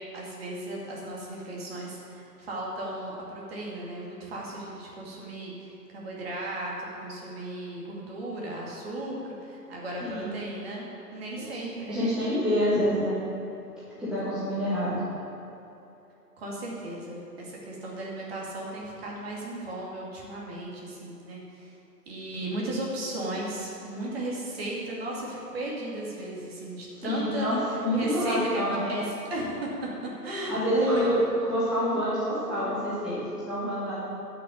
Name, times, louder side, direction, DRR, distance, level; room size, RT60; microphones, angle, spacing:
voice 1, 0.1-12.2 16.4-21.8 22.1-29.0 29.3-29.7 30.2-31.2, right 1 dB, 35° right, -4 dB, 2.3 m, -35 dB
voice 2, 10.0-10.4 11.3-11.6 11.9-13.2 14.0-15.0 27.0-28.9 30.5-31.2 31.5-34.0, equal, ahead, -13 dB, 1.7 m, -27 dB
11.0 x 6.2 x 7.2 m, 2.9 s
hypercardioid pair, 150°, 49 cm